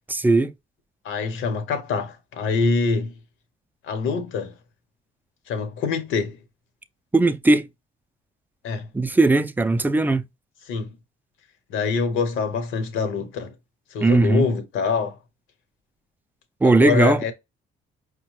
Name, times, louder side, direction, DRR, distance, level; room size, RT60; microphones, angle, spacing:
voice 1, 0.1-0.5 7.1-7.7 8.9-10.2 14.0-14.5 16.6-17.2, right 2 dB, 10° right, 0.3 m, -18 dB
voice 2, 1.0-3.1 3.8-4.5 5.5-6.4 8.6-8.9 10.7-10.9 11.7-13.5 13.9-15.2 16.6-17.3, left 5 dB, 85° left, 0.9 m, -25 dB
5.0 x 2.1 x 3.1 m
cardioid pair, 90°, 20 cm